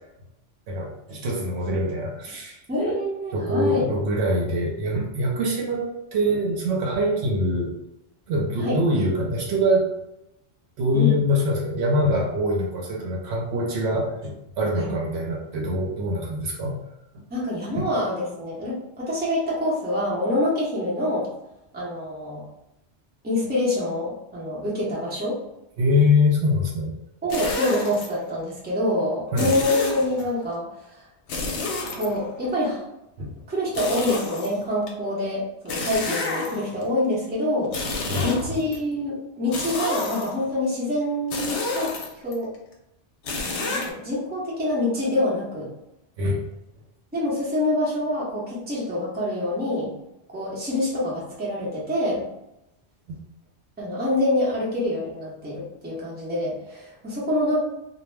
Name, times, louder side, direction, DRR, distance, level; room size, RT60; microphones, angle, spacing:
voice 1, 0.7-2.6 3.3-7.8 8.3-9.9 10.8-16.8 17.1-17.2 17.7-17.9 25.8-27.0 29.3-29.5 33.2-33.3 38.1-38.6 46.2-46.4 53.1-53.2, left 1 dB, 70° right, 0 dB, 0.8 m, -24 dB
voice 2, 2.7-3.9 8.6-8.8 10.9-11.1 14.7-14.9 17.3-21.3 21.7-22.4 23.2-25.4 27.2-30.6 30.9-31.0 32.0-32.8 33.5-37.7 38.2-41.9 42.2-42.5 43.4-45.7 47.1-49.9 50.3-52.2 53.8-57.6, left 1 dB, 10° right, -6 dB, 0.6 m, -26 dB
sound 1, 27.3-28.1 29.4-30.2 31.3-32.5 33.7-34.9 35.7-36.8 37.6-38.8 39.5-40.5 41.3-42.3 43.2-43.9, left 3 dB, 75° left, 0.9 m, -29 dB
2.2 x 2.0 x 3.2 m, 0.88 s
omnidirectional pair, 1.2 m